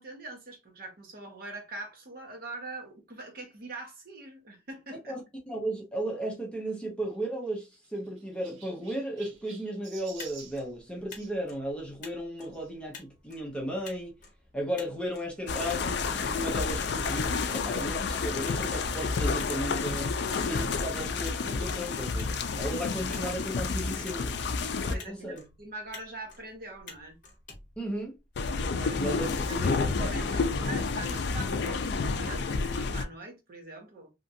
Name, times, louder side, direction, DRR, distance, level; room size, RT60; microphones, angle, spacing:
voice 1, 0.0-5.1 24.8-27.2 28.7-29.1 29.5-34.1, right 2 dB, 50° right, 1.0 m, -43 dB
voice 2, 5.5-14.2 14.5-20.2 20.5-22.3 22.6-24.3 24.8-25.4 27.8-28.1 28.9-30.1, right 1 dB, 5° left, 0.7 m, -35 dB
Chirp tweet, 7.1-11.3 12.5-12.7 13.4-13.5 13.7-13.8 15.1-15.2, right 6 dB, 85° right, 0.9 m, -51 dB
Motor vehicle (road), 10.0-28.5, left 4 dB, 40° left, 0.8 m, -52 dB
sound 1, 15.5-24.9 28.4-33.0, left 4 dB, 60° left, 0.4 m, -30 dB
2.9 x 2.5 x 2.6 m
head